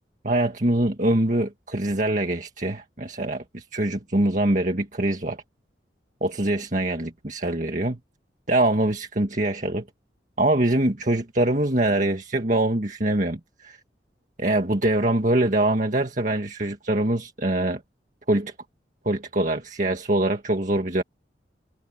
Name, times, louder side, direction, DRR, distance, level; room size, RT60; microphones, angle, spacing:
voice 1, 0.2-5.4 6.2-8.0 8.5-9.8 10.4-13.8 14.4-17.8 18.3-18.5 19.1-21.0, right 1 dB, 45° right, 1.8 m, -24 dB
head